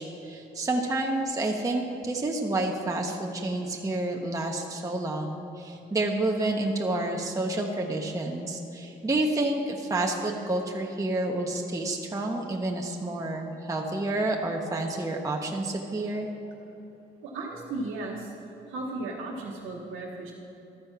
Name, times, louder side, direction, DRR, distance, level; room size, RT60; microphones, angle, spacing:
voice 1, 0.0-16.3, right 2 dB, 15° right, 1 dB, 0.7 m, -29 dB
voice 2, 17.2-18.3 18.7-20.3, right 2 dB, 90° right, -4 dB, 1.0 m, -35 dB
13.0 x 4.4 x 5.8 m, 3.0 s
cardioid pair, 90°, 20 cm